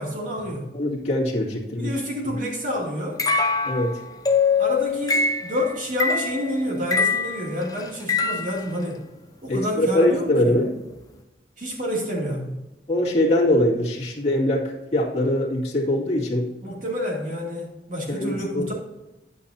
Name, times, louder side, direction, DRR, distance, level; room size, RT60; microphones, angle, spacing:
voice 1, 0.0-0.7 1.8-3.2 4.6-9.0 9.4-10.6 11.6-12.6 16.6-18.7, left 1 dB, 45° right, -2 dB, 2.7 m, -28 dB
voice 2, 0.7-1.9 3.6-4.0 9.5-10.7 12.9-16.5 18.1-18.7, left 1 dB, 35° left, -4 dB, 2.2 m, -22 dB
sound 1, 3.2-8.7, left 4 dB, 20° left, 0.6 m, -23 dB
10.5 x 8.4 x 2.8 m, 1.0 s
head